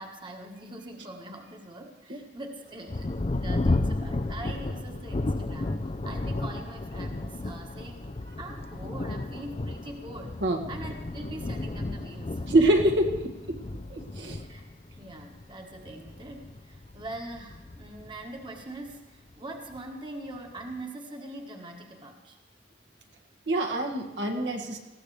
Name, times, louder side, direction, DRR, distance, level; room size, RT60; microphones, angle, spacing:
voice 1, 0.0-5.8 6.0-8.1 8.4-10.4 10.7-12.5 13.6-13.7 14.4-14.7 15.0-22.4, right 1 dB, 25° right, 2 dB, 1.4 m, -42 dB
Thunder, 2.9-18.9 19.7-19.8 20.3-20.8, left 2 dB, 35° left, 0.6 m, -33 dB
voice 2, 12.5-13.6 13.9-14.4 23.5-24.8, right 1 dB, 75° right, 1 dB, 2.0 m, -25 dB
19.5 x 15.5 x 3.3 m, 1.1 s
head